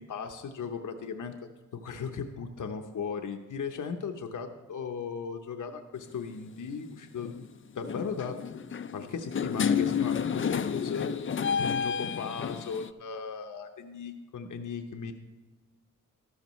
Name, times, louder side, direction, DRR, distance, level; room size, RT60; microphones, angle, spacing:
voice 1, 0.0-1.3 1.7-7.3 7.7-8.4 8.9-11.1 11.6-15.1, left 6 dB, 65° left, 5 dB, 0.8 m, -37 dB
sound 1, 6.0-6.2 7.2-7.5 7.8-12.9, left 7 dB, 40° left, 0.4 m, -30 dB
12.5 x 12.5 x 3.1 m, 1.2 s
cardioid pair, 80°, 33 cm